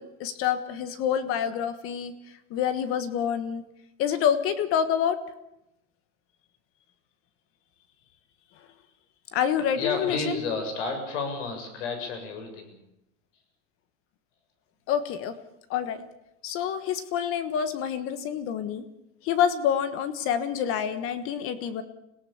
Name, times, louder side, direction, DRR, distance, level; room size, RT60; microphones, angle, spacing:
voice 1, 0.0-2.1 2.5-3.6 4.0-5.2 9.3-10.4 14.9-15.3 15.7-16.0 16.4-18.8 19.2-21.8, left 8 dB, 40° left, 12 dB, 1.4 m, -27 dB
voice 2, 9.8-12.7, left 4 dB, 85° left, 6 dB, 7.4 m, -31 dB
25.5 x 17.5 x 7.2 m, 0.85 s
supercardioid pair, 160°, 34 cm